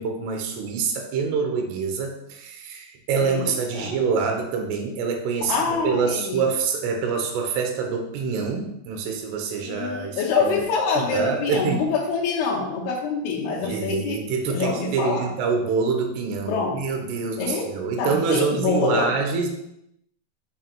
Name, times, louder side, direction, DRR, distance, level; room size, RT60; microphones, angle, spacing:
voice 1, 0.0-10.6 11.0-11.8 13.6-19.5, right 5 dB, 80° right, 3 dB, 3.0 m, -26 dB
voice 2, 3.2-4.0 5.5-6.4 9.6-14.2 14.5-15.3 16.5-16.8 17.4-17.7 18.0-19.1, left 4 dB, 75° left, -2 dB, 2.7 m, -25 dB
6.5 x 3.9 x 4.4 m, 0.80 s
omnidirectional pair, 4.8 m